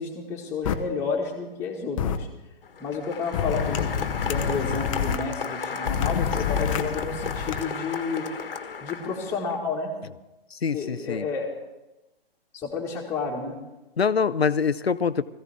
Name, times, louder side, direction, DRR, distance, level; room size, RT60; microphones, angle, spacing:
voice 1, 0.0-2.3 2.8-3.9 4.2-8.2 8.8-9.9 10.7-11.5 12.5-13.6, left 4 dB, 10° left, -5 dB, 2.1 m, -31 dB
sound 1, 0.7-0.8 2.0-2.2 3.3-5.2 5.9-7.6, left 7 dB, 35° left, 0.9 m, -27 dB
Applause, 2.6-9.6, left 6 dB, 65° left, 1.5 m, -34 dB
voice 2, 10.5-11.3 14.0-15.2, left 6 dB, 80° left, 16 dB, 0.8 m, -24 dB
21.0 x 15.0 x 3.6 m, 1.0 s
figure-of-eight pair, 130°, 30 cm